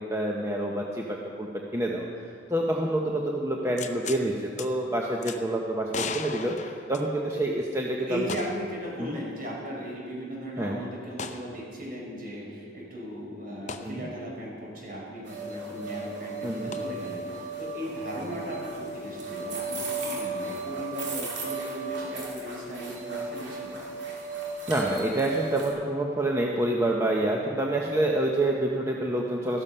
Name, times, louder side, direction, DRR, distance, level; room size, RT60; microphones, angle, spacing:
voice 1, 0.0-2.2 2.5-8.3 9.0-9.2 10.6-10.8 13.8-14.1 16.4-16.7 24.7-29.6, right 1 dB, 15° right, -1 dB, 0.9 m, -27 dB
sound 1, 3.8-4.2 4.6-4.7 5.2-5.4 5.9-7.4 8.3-8.7 9.1-9.2 11.2-11.5 13.7-13.9 16.7-16.8, left 5 dB, 40° left, 0.7 m, -36 dB
voice 2, 8.0-23.8 28.7-29.0, equal, 50° right, -3 dB, 4.7 m, -37 dB
sound 2, 15.3-25.7, right 3 dB, 70° right, 2.8 m, -35 dB
14.0 x 13.0 x 5.6 m, 2.3 s
head